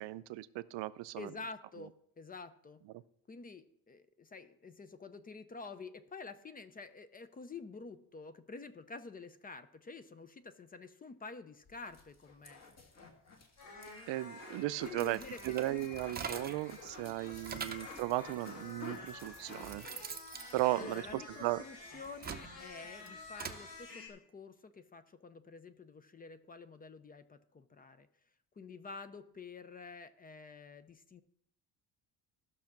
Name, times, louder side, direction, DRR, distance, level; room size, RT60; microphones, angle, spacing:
voice 1, 0.0-1.3 14.1-15.2 15.4-19.9 20.5-21.6, right 17 dB, 85° right, 15 dB, 0.6 m, -36 dB
voice 2, 1.2-2.8 3.3-12.6 14.5-15.5 17.5-17.7 20.8-28.1 28.6-31.2, left 4 dB, 20° left, 12 dB, 0.4 m, -49 dB
sound 1, 11.6-21.0 21.3-21.4 21.6-21.8, left 2 dB, 40° left, 1.7 m, -53 dB
sound 2, 13.6-24.1, left 2 dB, 70° left, 4.0 m, -51 dB
sound 3, 14.8-16.7 17.1-18.0 18.8-18.9 19.3-21.5 22.0-23.6, right 6 dB, 25° right, 0.6 m, -45 dB
14.5 x 6.2 x 5.9 m, 0.71 s
cardioid pair, 165°, 42 cm